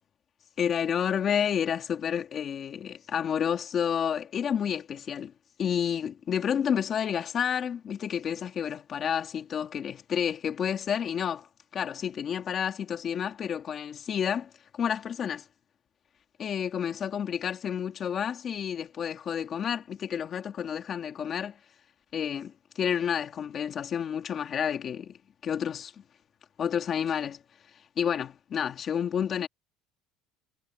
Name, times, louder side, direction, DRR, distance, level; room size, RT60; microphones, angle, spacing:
voice 1, 0.6-5.3 5.6-11.5 11.7-14.5 14.8-15.4 16.4-21.6 22.1-25.1 25.4-25.9 26.6-27.4 28.0-29.5, left 8 dB, 35° left, 2.8 m, -30 dB
cardioid pair, 140°, 0 cm